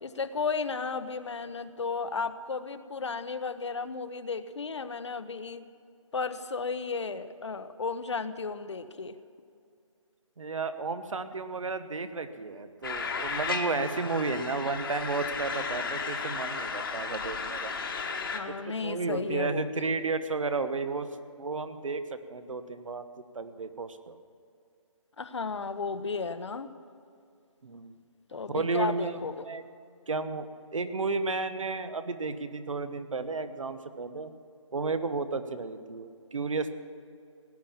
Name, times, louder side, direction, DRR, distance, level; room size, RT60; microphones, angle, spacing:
voice 1, 0.0-5.6 6.1-9.2 18.3-19.9 25.2-26.7 28.3-29.5, left 4 dB, 60° left, 12 dB, 0.9 m, -34 dB
voice 2, 10.4-17.7 18.5-21.1 21.4-23.0 23.3-24.2 27.6-27.9 28.5-29.6 30.1-34.3 34.7-36.7, right 4 dB, 75° right, 10 dB, 1.3 m, -33 dB
sound 1, 12.8-18.4, left 5 dB, 45° left, 1.4 m, -34 dB
18.0 x 10.0 x 7.3 m, 2.4 s
hypercardioid pair, 170°, 17 cm